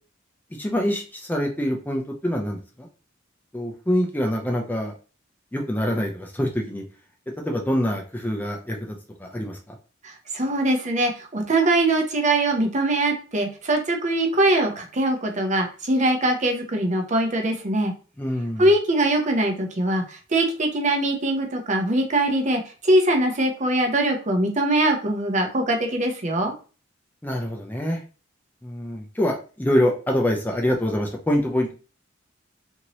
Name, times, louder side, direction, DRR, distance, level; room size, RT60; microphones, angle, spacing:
voice 1, 0.6-2.9 3.5-4.9 5.5-6.8 7.5-9.6 18.2-18.6 27.2-28.0 28.6-31.7, equal, 10° left, 1 dB, 0.4 m, -25 dB
voice 2, 10.0-17.9 18.6-26.5, right 1 dB, 40° right, 3 dB, 0.7 m, -22 dB
2.8 x 2.7 x 3.0 m, 0.36 s
head